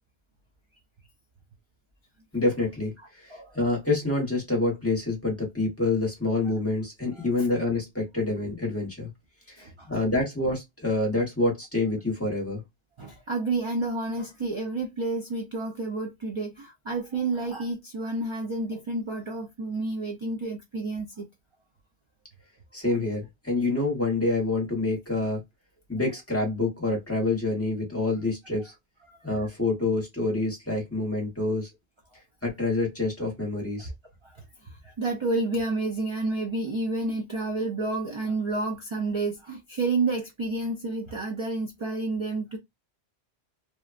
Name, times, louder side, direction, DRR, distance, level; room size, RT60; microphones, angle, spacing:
voice 1, 2.3-9.1 9.5-12.6 22.7-25.4 25.9-28.7 29.2-31.7 32.4-33.9, left 2 dB, 15° left, 1.0 m, -27 dB
voice 2, 9.6-10.0 13.0-21.3 29.1-29.2 34.2-34.4 34.6-42.6, right 3 dB, 45° right, 0.4 m, -30 dB
3.0 x 2.1 x 2.4 m
omnidirectional pair, 1.1 m